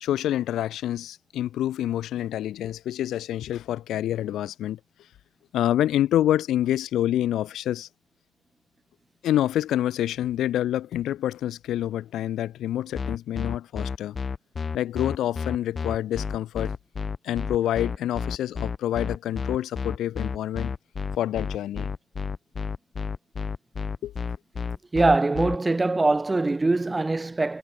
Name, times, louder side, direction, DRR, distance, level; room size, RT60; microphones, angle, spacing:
voice 1, 0.0-4.8 5.5-7.9 9.2-14.2 14.7-16.8 17.2-20.7 21.2-21.9 24.0-24.1, left 12 dB, 75° left, 0.7 m, -27 dB
sound 1, 12.9-25.6, left 5 dB, 40° left, 0.6 m, -31 dB
voice 2, 24.9-27.6, right 2 dB, 20° right, 1.2 m, -22 dB
cardioid pair, 90°, 0 cm